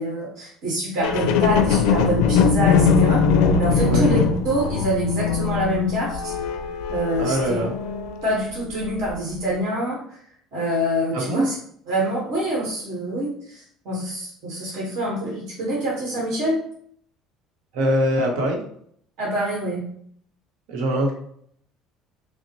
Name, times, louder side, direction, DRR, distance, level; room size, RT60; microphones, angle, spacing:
voice 1, 0.0-3.2 3.6-4.2 4.4-6.3 6.9-7.6 8.2-10.2 10.5-11.5 11.9-16.6 19.2-19.9, right 1 dB, 60° right, -4 dB, 1.4 m, -25 dB
sound 1, 1.0-8.5 9.0-9.1, left 6 dB, 85° left, 0.4 m, -21 dB
voice 2, 7.2-7.7 11.1-11.5 17.7-18.6 20.7-21.1, right 1 dB, 85° right, 0 dB, 1.0 m, -22 dB
5.7 x 2.1 x 2.9 m, 0.65 s
cardioid pair, 150°, 0 cm